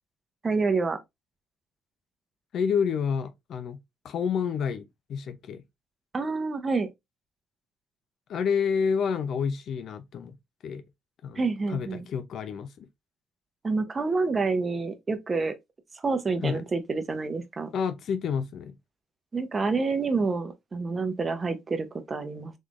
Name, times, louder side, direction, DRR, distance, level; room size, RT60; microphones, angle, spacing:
voice 1, 0.4-1.0 6.1-6.9 11.4-12.1 13.6-15.5 16.0-17.7 19.3-22.5, right 4 dB, 30° right, 0.7 m, -28 dB
voice 2, 2.5-3.8 4.0-5.6 8.3-10.3 10.6-10.8 11.2-11.4 11.7-12.7 16.4-16.6 17.7-18.7, left 6 dB, 60° left, 0.5 m, -29 dB
3.5 x 3.2 x 2.5 m
cardioid pair, 100°, 0 cm